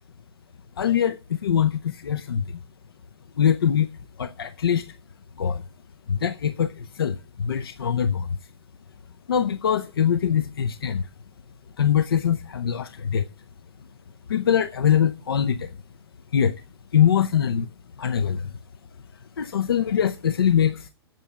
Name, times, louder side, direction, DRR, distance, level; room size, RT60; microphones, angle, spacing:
voice 1, 0.8-2.6 3.4-3.9 4.2-4.9 5.4-5.6 6.1-8.4 9.3-11.1 11.8-13.3 14.3-15.7 16.3-16.5 16.9-17.7 18.0-18.5 19.4-20.9, left 8 dB, 60° left, 0.7 m, -23 dB
9.0 x 7.8 x 8.3 m
figure-of-eight pair, 105°, 14 cm